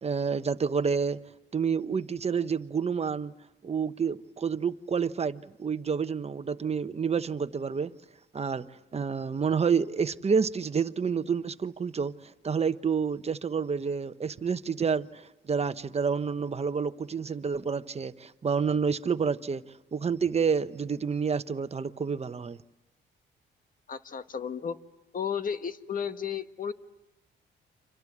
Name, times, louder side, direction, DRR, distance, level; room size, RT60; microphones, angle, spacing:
voice 1, 0.0-1.2 1.5-3.3 3.6-7.9 8.3-8.6 8.9-19.6 19.9-22.6, right 6 dB, 30° right, 1.1 m, -29 dB
voice 2, 23.9-24.8 25.1-26.7, left 7 dB, 45° left, 1.4 m, -33 dB
30.0 x 26.0 x 7.4 m
cardioid pair, 90°, 20 cm